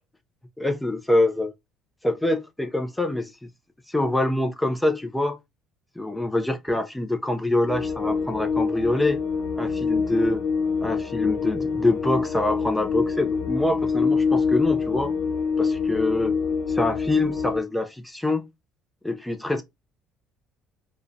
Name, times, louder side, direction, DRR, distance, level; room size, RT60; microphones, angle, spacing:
voice 1, 0.6-1.5 2.0-3.3 3.9-5.4 6.0-9.2 9.6-10.4 10.8-15.1 15.6-16.4 16.7-18.5 19.0-19.6, left 2 dB, 5° left, 0.3 m, -25 dB
sound 1, 7.6-17.6, left 5 dB, 65° left, 0.7 m, -25 dB
2.5 x 2.0 x 2.4 m
cardioid pair, 110°, 0 cm